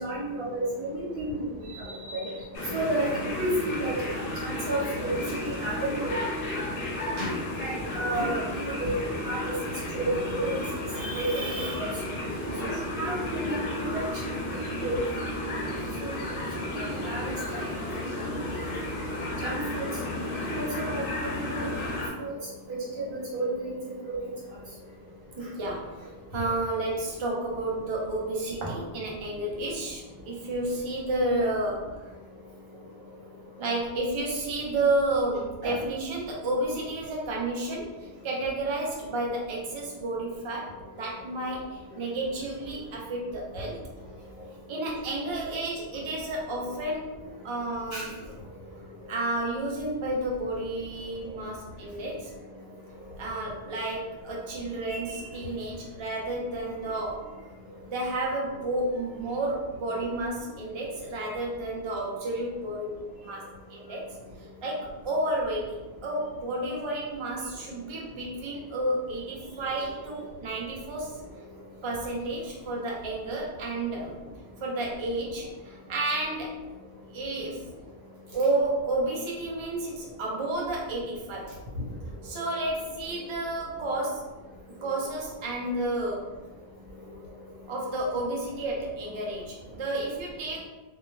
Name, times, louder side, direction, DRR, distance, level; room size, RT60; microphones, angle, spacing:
voice 1, 0.0-1.4 1.8-2.3 2.7-3.9 4.4-5.1 5.4-6.1 7.2-7.3 7.6-9.0 9.3-9.4 9.9-10.6 11.0-11.8 12.9-14.3 14.8-15.0 16.0-16.1 16.7-17.7 18.2-18.3 19.4-19.8 20.4-21.0 21.5-21.6 22.2-22.3 23.0-23.7 24.2-24.3 35.6-35.7 47.9-48.0 54.9-55.0, right 1 dB, 70° right, -6 dB, 1.2 m, -31 dB
sound 1, 2.5-22.1, left 1 dB, 65° left, 0.7 m, -33 dB
voice 2, 12.5-12.8 18.0-18.3 25.4-32.1 33.6-43.8 44.7-47.2 47.4-48.1 49.1-52.3 53.2-57.3 57.9-64.1 64.6-71.2 71.8-74.2 74.6-76.6 77.1-77.6 78.3-81.6 82.2-84.3 84.7-86.3 87.7-90.7, right 2 dB, 45° right, -3 dB, 0.4 m, -31 dB
2.2 x 2.2 x 3.1 m, 1.1 s
omnidirectional pair, 1.1 m